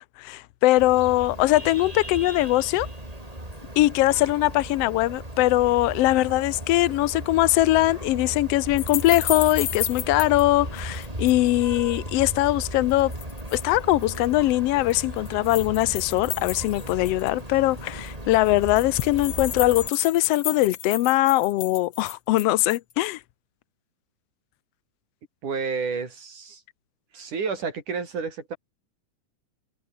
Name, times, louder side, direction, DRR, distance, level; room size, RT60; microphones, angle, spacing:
voice 1, 0.0-2.9 3.8-13.1 13.5-23.2, left 17 dB, 80° left, 1.4 m, -21 dB
Vehicle horn car horn honking, 0.8-19.9, right 1 dB, 10° right, 6.7 m, -36 dB
sound 1, 8.8-10.4 10.8-11.5 12.9-13.6 14.0-14.3 14.9-17.4 17.8-17.9 18.1-18.2 18.3-22.9, left 10 dB, 55° left, 2.3 m, -33 dB
voice 2, 25.4-26.6 27.1-28.6, right 5 dB, 80° right, 6.5 m, -30 dB
omnidirectional pair, 3.5 m